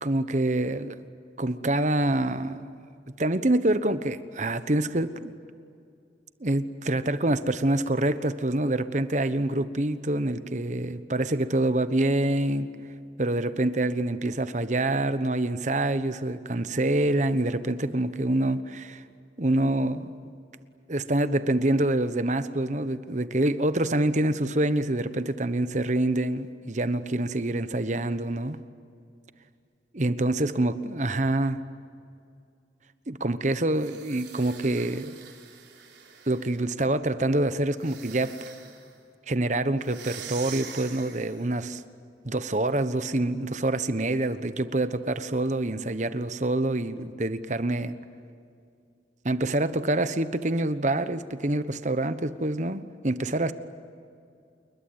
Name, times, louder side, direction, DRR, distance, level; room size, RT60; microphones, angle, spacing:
voice 1, 0.0-1.0 1.4-2.7 3.2-5.4 6.4-12.7 13.2-19.0 19.4-20.3 20.9-28.6 29.9-31.6 33.1-35.2 36.3-38.4 39.3-41.8 42.2-48.0 49.2-53.5, right 1 dB, 45° right, 12 dB, 1.1 m, -26 dB
sound 1, 33.7-36.7 37.7-38.9 39.8-41.5, right 8 dB, 85° right, 4.1 m, -44 dB
28.5 x 22.0 x 9.6 m, 2.4 s
head